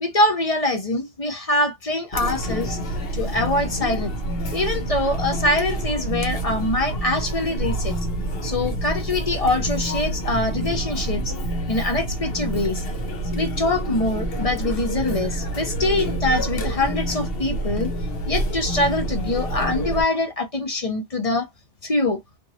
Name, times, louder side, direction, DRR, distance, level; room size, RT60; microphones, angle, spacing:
voice 1, 0.0-2.8 3.1-4.1 4.5-7.9 8.4-11.3 11.7-12.8 13.3-17.9 18.3-21.5 21.8-22.2, left 2 dB, 35° left, 0.9 m, -24 dB
Chatter, 2.1-20.0, right 1 dB, 70° left, 1.1 m, -27 dB
3.0 x 2.6 x 2.6 m
omnidirectional pair, 1.1 m